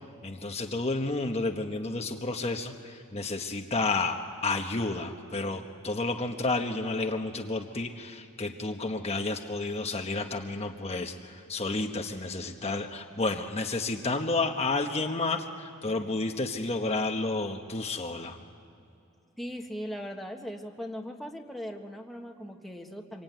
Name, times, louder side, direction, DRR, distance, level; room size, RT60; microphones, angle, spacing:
voice 1, 0.2-18.4, left 3 dB, 30° left, 3 dB, 1.2 m, -31 dB
voice 2, 19.4-23.2, equal, ahead, 1 dB, 1.6 m, -39 dB
26.0 x 24.0 x 9.3 m, 2.7 s
head